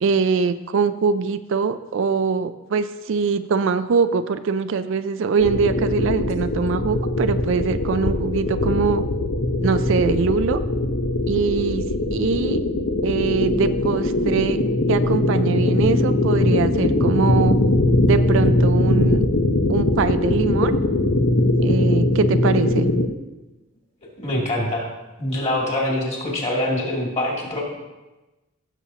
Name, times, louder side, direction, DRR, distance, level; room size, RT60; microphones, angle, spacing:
voice 1, 0.0-9.0 9.6-10.6 11.3-11.9 12.1-12.6 13.0-14.6 14.9-17.6 18.1-19.2 19.7-20.7 21.6-22.9, right 5 dB, 60° right, 12 dB, 0.4 m, -22 dB
sound 1, 5.4-23.1, left 1 dB, 60° left, 0.8 m, -21 dB
voice 2, 24.2-24.9 25.2-27.6, left 1 dB, 30° left, -3 dB, 2.6 m, -24 dB
15.5 x 7.1 x 2.8 m, 1.1 s
head